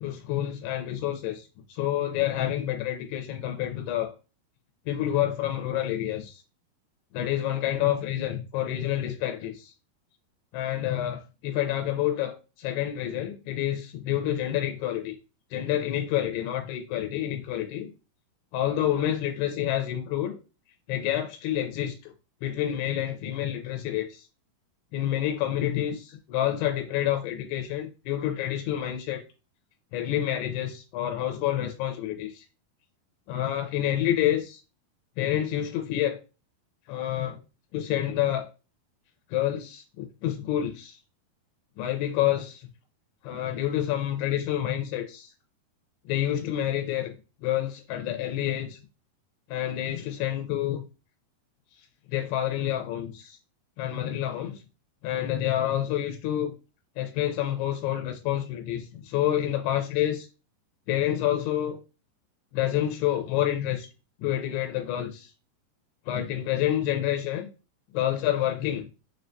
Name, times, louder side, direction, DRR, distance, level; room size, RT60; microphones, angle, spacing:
voice 1, 0.0-4.1 4.9-6.4 7.1-9.7 10.5-15.1 15.5-17.9 18.5-20.4 20.9-22.1 22.4-24.3 24.9-29.2 29.9-32.5 33.3-34.6 35.2-36.2 36.9-37.4 37.7-38.5 39.3-41.0 41.8-42.7 43.2-45.3 46.1-47.1 47.4-48.8 49.5-50.8 52.1-53.4 53.8-54.6 55.0-56.5 57.0-60.3 60.9-61.8 62.5-63.9 64.2-65.3 66.1-67.5 67.9-68.9, left 12 dB, 90° left, 2.6 m, -28 dB
6.2 x 2.2 x 2.5 m
omnidirectional pair, 4.5 m